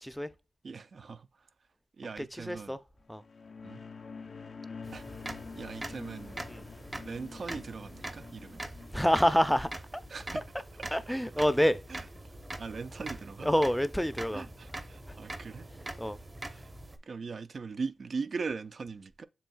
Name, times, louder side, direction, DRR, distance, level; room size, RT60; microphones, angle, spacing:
voice 1, 0.6-1.3 2.0-2.8 3.6-3.8 4.9-5.0 5.6-6.4 7.0-8.6 10.1-10.4 10.8-10.9 11.9-12.0 12.6-13.5 14.3-15.7 16.4-16.6 17.1-19.3, right 4 dB, 70° right, 0.3 m, -40 dB
voice 2, 2.2-2.8 3.1-3.2 6.5-6.6 8.9-9.7 10.3-10.4 10.9-11.8 13.4-14.4 16.0-16.2, equal, 5° left, 0.5 m, -27 dB
sound 1, 3.1-9.7, left 5 dB, 65° left, 0.4 m, -47 dB
sound 2, 4.8-17.0, right 1 dB, 30° right, 0.8 m, -43 dB
7.1 x 2.7 x 2.2 m
cardioid pair, 50°, 0 cm